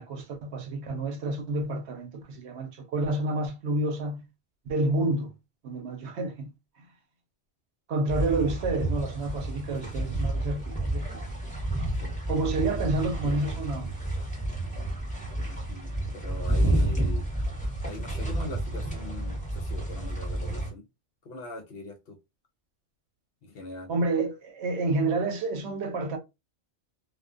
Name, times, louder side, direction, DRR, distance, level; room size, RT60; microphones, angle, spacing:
voice 1, 0.0-4.3 4.7-5.3 5.6-6.5 7.9-11.1 12.3-13.9 23.9-26.2, right 2 dB, 70° right, 0.9 m, -29 dB
sound 1, 8.1-20.7, right 1 dB, 5° left, 0.9 m, -30 dB
voice 2, 15.5-17.3 17.8-20.9 21.2-22.2 23.4-23.9, left 2 dB, 60° left, 0.7 m, -41 dB
2.4 x 2.2 x 2.4 m
omnidirectional pair, 1.2 m